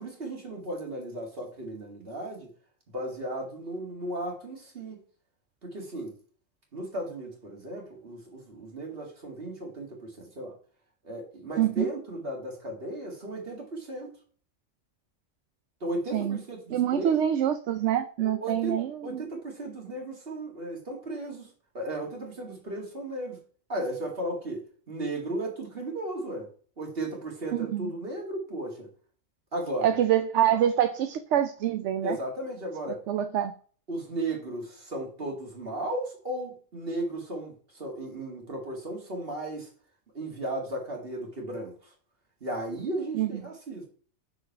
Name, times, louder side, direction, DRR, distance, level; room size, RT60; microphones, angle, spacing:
voice 1, 0.0-2.5 2.9-5.0 5.6-6.1 6.7-10.5 11.0-14.2 15.8-17.2 18.2-21.5 21.7-23.4 23.7-26.5 26.8-28.9 29.5-30.0 32.0-33.0 33.9-39.7 40.1-41.7 42.4-43.9, right 1 dB, 50° right, 0 dB, 2.2 m, -35 dB
voice 2, 11.6-11.9 16.1-16.4 16.7-19.2 27.5-27.9 29.8-32.2 33.1-33.5 43.1-43.4, right 10 dB, 75° right, 9 dB, 0.9 m, -26 dB
6.2 x 5.0 x 4.5 m, 0.43 s
omnidirectional pair, 1.2 m